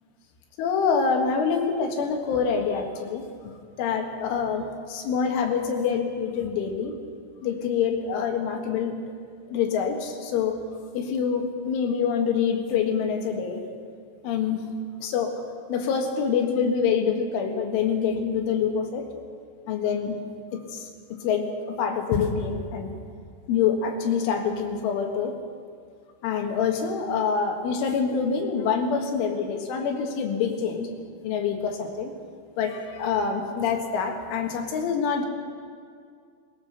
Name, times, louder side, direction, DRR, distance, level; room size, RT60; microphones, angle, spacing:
voice 1, 0.6-7.0 7.4-9.0 9.5-10.6 10.9-13.6 14.2-14.7 15.0-15.4 15.7-19.1 19.7-20.2 20.5-22.9 23.5-25.4 26.2-30.9 31.2-32.1 32.6-35.3, left 6 dB, 85° left, 3 dB, 4.2 m, -26 dB
20.5 x 19.5 x 6.6 m, 2.2 s
omnidirectional pair, 5.4 m